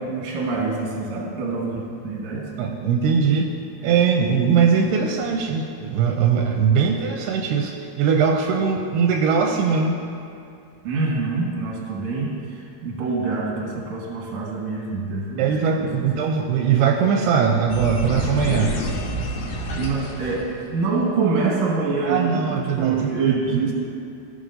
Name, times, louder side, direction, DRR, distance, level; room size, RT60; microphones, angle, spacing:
voice 1, 0.0-2.4 10.8-15.5 16.0-16.1 19.8-23.7, right 4 dB, 55° right, -3 dB, 2.2 m, -25 dB
voice 2, 2.6-3.5 3.8-10.0 15.4-18.8 22.0-23.0 23.3-23.6, right 6 dB, 85° right, 2 dB, 2.5 m, -20 dB
sound 1, 17.7-21.0, equal, 70° left, 1.9 m, -27 dB
16.0 x 6.9 x 2.6 m, 2.5 s
omnidirectional pair, 4.7 m